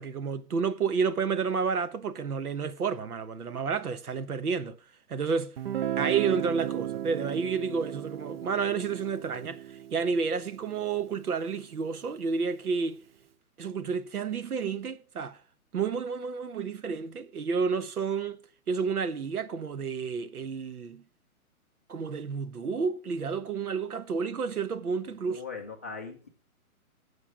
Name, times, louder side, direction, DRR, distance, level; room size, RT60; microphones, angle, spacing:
voice 1, 0.0-4.8 5.1-5.6 6.0-13.0 13.6-15.4 15.7-21.0 21.9-25.4, right 5 dB, 85° right, 1.2 m, -30 dB
Guitar, 5.6-11.3, right 11 dB, 45° right, 0.5 m, -35 dB
voice 2, 25.3-26.3, left 5 dB, 10° left, 0.4 m, -40 dB
9.8 x 7.2 x 5.9 m
hypercardioid pair, 140°, 44 cm